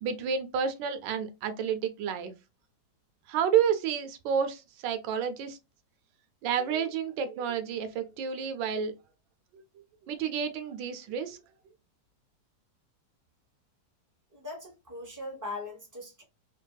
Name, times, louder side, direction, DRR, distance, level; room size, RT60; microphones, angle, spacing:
voice 1, 0.0-2.3 3.3-5.6 6.4-8.9 9.5-9.6 10.1-11.4, right 7 dB, 80° right, 1.3 m, -30 dB
voice 2, 14.3-16.2, left 2 dB, 25° right, 0.4 m, -40 dB
3.3 x 2.3 x 2.2 m
omnidirectional pair, 2.0 m